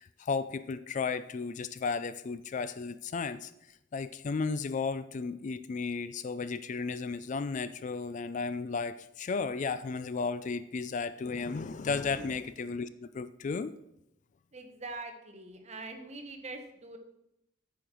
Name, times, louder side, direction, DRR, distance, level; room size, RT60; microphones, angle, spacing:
voice 1, 0.0-3.5 3.9-13.7, left 4 dB, 40° left, 14 dB, 0.3 m, -34 dB
voice 2, 14.5-17.0, right 3 dB, 35° right, 5 dB, 1.2 m, -43 dB
8.7 x 5.2 x 6.1 m, 0.84 s
head